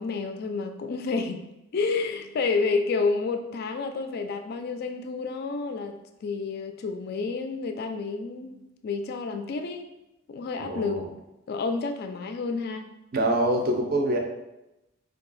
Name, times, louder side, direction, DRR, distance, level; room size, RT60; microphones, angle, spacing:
voice 1, 0.0-9.9 10.3-11.1 11.5-12.9, left 4 dB, 50° left, 7 dB, 0.3 m, -30 dB
voice 2, 10.6-11.1 13.1-14.2, right 1 dB, 50° right, 3 dB, 0.5 m, -25 dB
2.7 x 2.3 x 3.9 m, 0.93 s
head